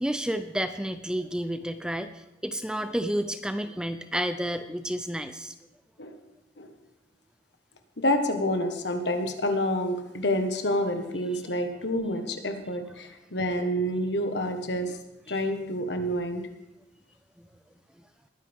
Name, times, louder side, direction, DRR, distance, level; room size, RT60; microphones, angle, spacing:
voice 1, 0.0-5.5 15.3-15.4 17.4-17.5, equal, 5° right, 9 dB, 0.5 m, -31 dB
voice 2, 8.0-15.0 15.3-16.4, left 1 dB, 70° left, 6 dB, 1.5 m, -28 dB
20.5 x 9.8 x 3.6 m, 0.94 s
head